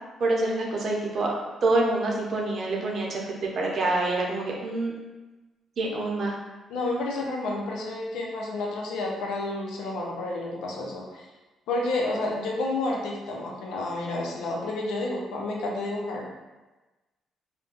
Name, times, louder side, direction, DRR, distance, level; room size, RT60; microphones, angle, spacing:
voice 1, 0.2-1.3 1.6-4.9 5.8-6.4, right 2 dB, 55° right, -1 dB, 0.6 m, -26 dB
voice 2, 6.7-11.3 11.7-16.3, left 2 dB, 90° left, -1 dB, 0.5 m, -30 dB
2.5 x 2.2 x 3.7 m, 1.2 s
cardioid pair, 90°, 0 cm